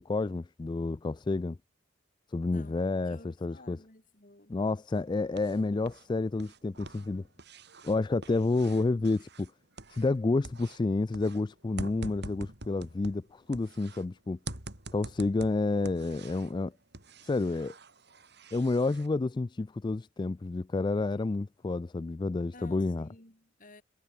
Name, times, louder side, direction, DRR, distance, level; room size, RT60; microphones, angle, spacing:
voice 1, 0.0-1.6 2.3-3.8 4.5-7.2 7.8-9.5 9.9-14.4 14.9-16.7 17.2-17.7 18.5-23.1, left 3 dB, 25° left, 0.3 m, -30 dB
voice 2, 2.5-4.5 22.5-23.8, left 2 dB, 45° left, 6.8 m, -54 dB
sound 1, 4.9-6.1 6.3-10.2 10.4-14.0 14.5-16.6 16.9-19.1, right 2 dB, 60° right, 7.8 m, -46 dB
head